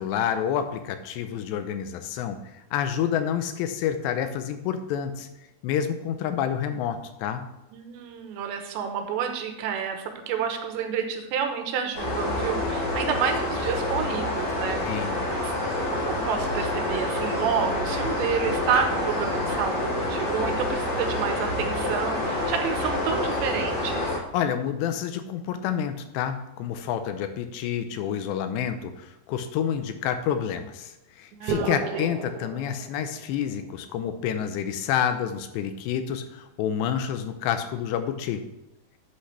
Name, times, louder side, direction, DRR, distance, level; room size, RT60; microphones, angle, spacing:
voice 1, 0.0-2.4 2.7-5.3 5.6-7.5 14.9-15.2 24.3-30.9 31.2-38.5, left 9 dB, 80° left, 9 dB, 2.9 m, -28 dB
voice 2, 7.7-15.5 16.1-24.1 31.3-32.1, right 7 dB, 80° right, 5 dB, 3.2 m, -29 dB
sound 1, 11.9-24.2, left 1 dB, 25° left, 3.7 m, -27 dB
sound 2, 31.5-33.4, right 4 dB, 65° right, 2.0 m, -32 dB
11.5 x 8.5 x 3.3 m, 0.96 s
omnidirectional pair, 5.1 m